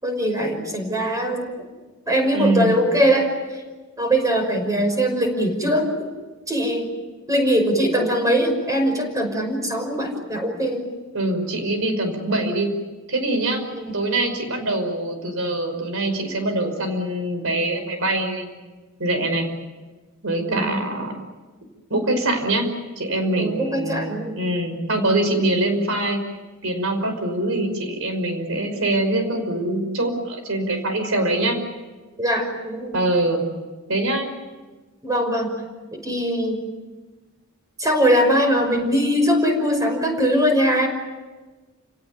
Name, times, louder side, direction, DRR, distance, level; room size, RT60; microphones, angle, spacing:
voice 1, 0.0-1.5 2.1-3.6 4.0-6.1 6.5-6.9 7.3-10.9 13.7-13.9 20.5-20.8 23.3-24.4 32.2-33.0 35.0-35.5 35.9-36.6 37.8-40.9, equal, 15° right, 4 dB, 5.6 m, -21 dB
voice 2, 2.3-2.8 11.1-12.7 13.1-13.6 13.9-18.5 19.0-19.5 20.2-21.1 21.9-22.7 23.0-26.2 26.6-31.6 32.9-33.4 33.9-34.3, right 1 dB, 65° right, 6 dB, 5.5 m, -23 dB
29.5 x 18.0 x 9.5 m, 1.3 s
head